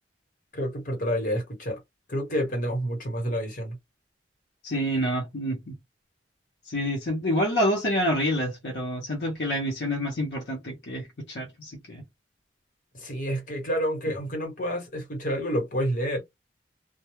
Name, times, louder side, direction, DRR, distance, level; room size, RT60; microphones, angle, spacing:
voice 1, 0.5-1.8 2.1-3.8 12.9-16.2, equal, 50° left, 1.2 m, -29 dB
voice 2, 4.6-5.8 6.7-12.0, equal, 70° left, 0.7 m, -28 dB
2.2 x 2.1 x 3.0 m
head